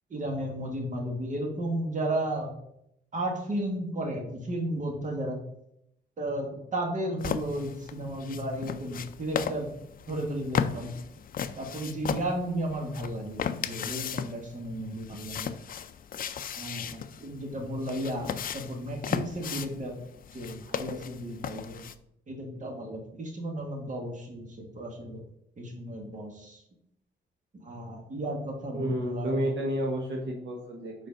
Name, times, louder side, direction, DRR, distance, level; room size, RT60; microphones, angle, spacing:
voice 1, 0.1-2.5 3.1-5.4 6.2-9.7 10.1-10.9 11.6-15.5 16.5-20.0 20.3-21.8 22.3-25.2 25.6-26.6 27.6-29.4, right 1 dB, 40° right, 1 dB, 1.8 m, -34 dB
sound 1, 7.2-21.9, left 8 dB, 45° left, 0.4 m, -36 dB
voice 2, 28.7-30.9, equal, 65° right, 0 dB, 1.3 m, -30 dB
5.2 x 4.5 x 5.2 m, 0.76 s
cardioid pair, 110°, 20 cm